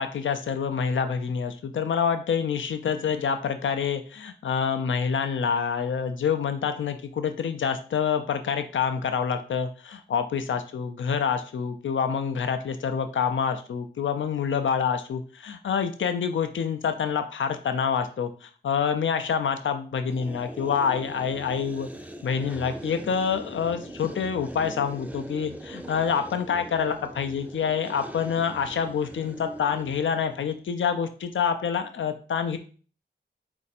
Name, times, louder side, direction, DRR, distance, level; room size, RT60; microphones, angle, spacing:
voice 1, 0.0-21.9 22.2-32.6, left 6 dB, 80° left, 7 dB, 0.4 m, -27 dB
sound 1, 20.1-30.6, right 1 dB, 5° right, 0.4 m, -41 dB
4.0 x 2.5 x 4.1 m, 0.40 s
wide cardioid pair, 65°, 20 cm